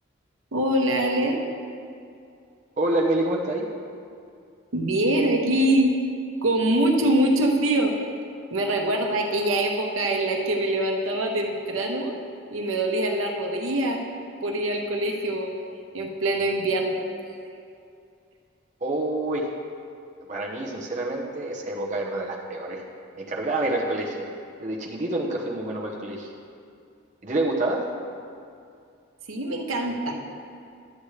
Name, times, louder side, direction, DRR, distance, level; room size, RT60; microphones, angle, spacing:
voice 1, 0.5-1.4 4.7-5.9 6.4-7.9 8.5-12.1 12.5-14.0 14.4-15.5 15.9-17.1 29.3-30.1, right 1 dB, 90° right, 2 dB, 1.0 m, -24 dB
voice 2, 2.8-3.7 18.8-19.6 20.3-22.8 23.2-24.3 24.6-26.3 27.2-27.9, right 1 dB, 35° right, -3 dB, 0.9 m, -27 dB
11.5 x 8.2 x 3.2 m, 2.4 s
head